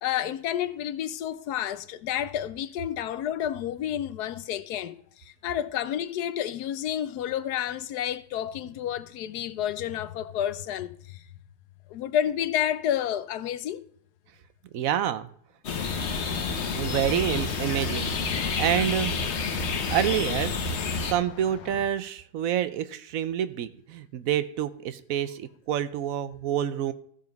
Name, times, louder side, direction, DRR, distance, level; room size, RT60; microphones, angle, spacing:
voice 1, 0.0-11.2 11.9-13.8, left 10 dB, 90° left, 1.2 m, -30 dB
voice 2, 14.7-15.3 16.7-18.3 18.6-19.1 19.9-20.5 21.1-26.9, right 10 dB, 70° right, 1.0 m, -28 dB
sound 1, 15.6-21.1, left 4 dB, 50° left, 1.2 m, -29 dB
sound 2, 15.9-21.9, left 6 dB, 70° left, 1.3 m, -42 dB
14.5 x 5.2 x 5.2 m
omnidirectional pair, 1.6 m